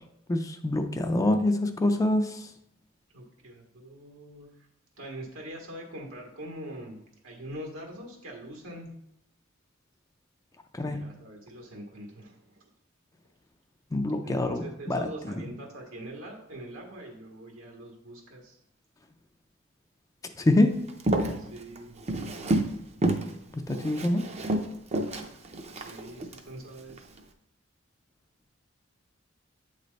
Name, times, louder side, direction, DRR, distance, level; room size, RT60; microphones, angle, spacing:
voice 1, 0.3-2.5 10.7-11.0 13.9-15.4 20.4-20.7 23.7-24.2, left 1 dB, 15° left, 6 dB, 0.4 m, -25 dB
voice 2, 3.1-4.7 5.0-8.9 10.8-12.7 14.2-18.6 21.4-22.0 25.7-27.1, right 1 dB, 85° right, 0 dB, 1.6 m, -43 dB
Walk footsteps, 20.9-22.8 23.0-23.3 23.7-26.4 26.9-27.2, right 1 dB, 30° right, 0.6 m, -29 dB
8.2 x 3.2 x 4.0 m, 0.76 s
head